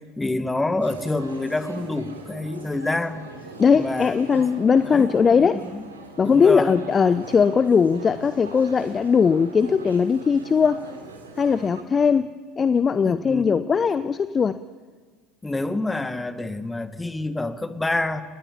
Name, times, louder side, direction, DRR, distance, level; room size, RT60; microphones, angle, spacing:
voice 1, 0.2-3.2 3.7-4.4 4.8-5.8 6.2-6.7 13.0-13.6 15.4-18.2, left 2 dB, 10° left, 11 dB, 1.8 m, -27 dB
sound 1, 0.8-11.8, right 3 dB, 80° right, 3.5 m, -41 dB
voice 2, 3.6-5.6 6.2-10.8 11.4-14.6, left 6 dB, 25° left, 14 dB, 0.8 m, -19 dB
30.0 x 20.0 x 8.8 m, 1.4 s
figure-of-eight pair, 70°, 0 cm